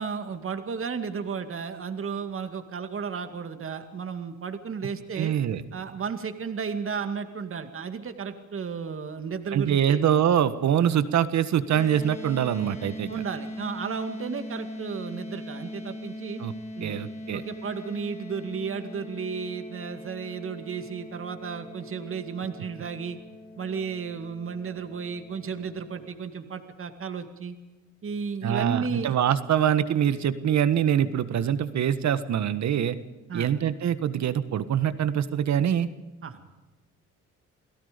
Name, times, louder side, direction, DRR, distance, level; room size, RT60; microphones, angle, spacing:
voice 1, 0.0-5.3 5.7-10.0 13.1-16.4 16.8-17.0 17.3-23.2 23.6-27.6 28.0-29.1 33.3-33.5 36.2-36.4, right 6 dB, 45° right, 8 dB, 2.2 m, -33 dB
voice 2, 5.1-5.6 9.5-13.1 16.4-16.5 16.8-17.4 28.4-33.0 33.3-35.9, right 9 dB, 65° right, 13 dB, 1.5 m, -24 dB
sound 1, 11.7-26.1, left 1 dB, 20° left, 3.6 m, -41 dB
28.5 x 17.5 x 5.3 m, 1.1 s
cardioid pair, 90°, 30 cm